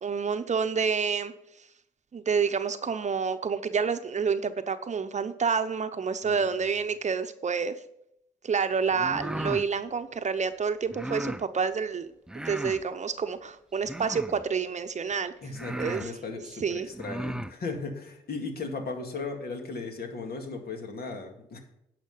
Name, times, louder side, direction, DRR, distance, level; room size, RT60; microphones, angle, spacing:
voice 1, 0.0-1.3 2.1-7.8 8.4-12.1 12.3-15.3 15.8-16.1 16.6-16.9, right 5 dB, 40° right, 10 dB, 0.8 m, -28 dB
sound 1, 8.9-9.7 10.9-11.4 12.3-12.8 13.8-14.4 15.1-15.2 15.5-16.1 16.9-17.5, right 1 dB, 5° right, 0.4 m, -35 dB
voice 2, 15.4-21.6, left 3 dB, 60° left, 3 dB, 2.3 m, -36 dB
10.5 x 5.9 x 5.6 m, 0.78 s
supercardioid pair, 60°, 18 cm